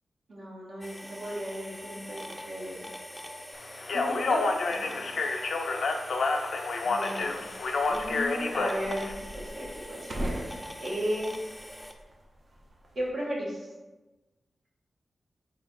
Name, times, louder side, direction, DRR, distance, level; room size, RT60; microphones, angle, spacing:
voice 1, 0.3-2.8 3.9-4.4 4.7-5.1 6.8-7.4 7.9-10.4 10.8-11.3 12.9-13.7, equal, 75° right, -6 dB, 1.0 m, -35 dB
sound 1, 0.8-11.9, equal, 5° left, 0.4 m, -44 dB
Speech, 3.8-9.1, left 3 dB, 80° left, 0.3 m, -29 dB
sound 2, 7.2-13.1, right 1 dB, 60° right, 0.5 m, -42 dB
3.9 x 3.3 x 2.5 m, 1.1 s
wide cardioid pair, 80°, 0 cm